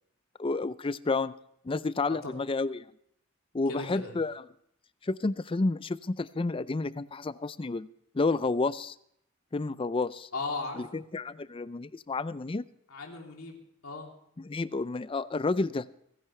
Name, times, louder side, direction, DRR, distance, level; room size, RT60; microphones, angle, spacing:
voice 1, 0.4-1.3 1.6-2.9 3.5-4.4 5.0-7.9 8.1-9.0 9.5-10.3 10.8-12.6 14.4-15.9, left 3 dB, 25° left, 16 dB, 0.4 m, -30 dB
voice 2, 2.1-2.4 3.7-4.1 10.3-10.8 12.9-14.1, left 3 dB, 85° left, 1 dB, 3.1 m, -37 dB
29.5 x 10.5 x 3.3 m, 0.71 s
head